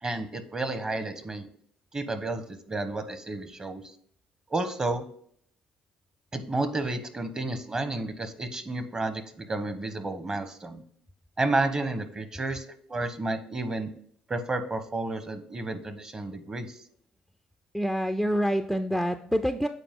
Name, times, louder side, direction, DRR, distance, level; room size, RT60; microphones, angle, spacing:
voice 1, 0.0-1.5 1.9-3.9 4.5-5.0 6.3-10.8 11.4-13.9 14.3-16.8, right 2 dB, 25° right, 10 dB, 1.0 m, -31 dB
voice 2, 17.7-19.7, equal, ahead, 8 dB, 0.4 m, -26 dB
8.1 x 4.3 x 3.7 m, 0.63 s
supercardioid pair, 75°, 3 cm